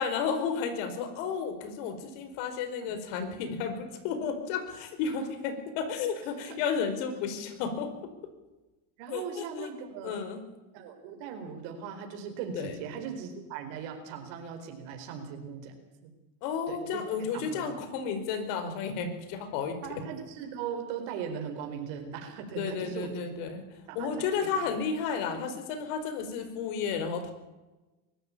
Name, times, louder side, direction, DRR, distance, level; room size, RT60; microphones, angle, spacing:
voice 1, 0.0-7.9 9.1-9.7 10.0-10.4 12.5-12.7 16.4-19.8 22.6-27.3, left 6 dB, 75° left, 8 dB, 5.0 m, -32 dB
voice 2, 9.0-10.1 10.7-15.7 16.0-16.1 16.7-17.6 19.8-23.2 23.9-24.1 24.4-24.5, right 7 dB, 85° right, 4 dB, 4.5 m, -39 dB
23.5 x 14.0 x 8.7 m, 1.1 s
supercardioid pair, 125°, 49 cm